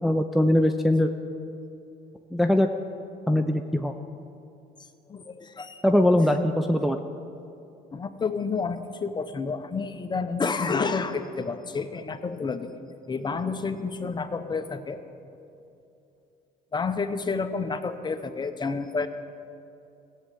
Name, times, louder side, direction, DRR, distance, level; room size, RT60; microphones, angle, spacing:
voice 1, 0.0-1.1 2.3-2.7 3.3-3.9 5.8-7.0, left 1 dB, ahead, 4 dB, 0.5 m, -21 dB
voice 2, 5.1-5.8 7.9-12.8 13.1-15.0 16.7-19.1, left 4 dB, 25° left, 9 dB, 0.8 m, -30 dB
16.0 x 7.7 x 8.5 m, 2.7 s
cardioid pair, 110°, 17 cm